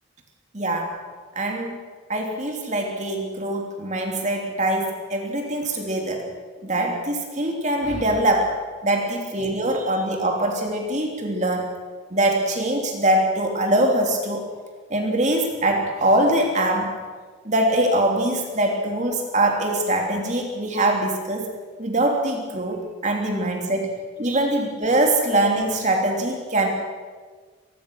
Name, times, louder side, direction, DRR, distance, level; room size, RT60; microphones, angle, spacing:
voice 1, 0.5-1.0 1.3-1.8 2.1-6.3 6.6-8.5 8.8-11.7 12.1-14.5 14.9-17.0 17.4-21.5 21.8-23.9 24.2-26.7, right 1 dB, 35° right, 2 dB, 2.9 m, -23 dB
26.0 x 20.5 x 6.4 m, 1.5 s
head